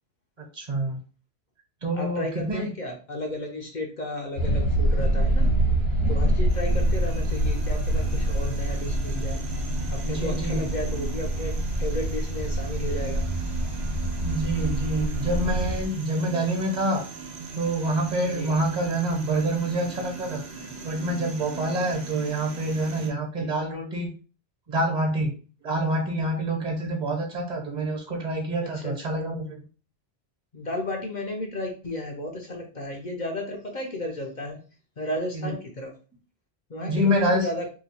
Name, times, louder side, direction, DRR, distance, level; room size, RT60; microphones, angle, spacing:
voice 1, 0.4-1.0 1.8-2.7 10.0-10.7 14.2-17.1 17.6-20.4 20.8-24.1 24.7-25.3 25.6-29.6 35.3-35.5 36.9-37.5, right 1 dB, 45° right, 0 dB, 1.1 m, -27 dB
voice 2, 1.9-5.5 6.1-9.4 9.9-13.2 18.3-18.6 23.4-23.5 28.7-29.2 30.5-34.6 35.0-35.9 36.7-37.6, left 1 dB, 50° left, 1 dB, 0.7 m, -33 dB
sound 1, 4.4-15.9, right 1 dB, 75° left, 1.3 m, -25 dB
sound 2, 6.5-23.1, right 4 dB, 80° right, 1.1 m, -39 dB
2.8 x 2.3 x 4.1 m, 0.36 s
omnidirectional pair, 1.1 m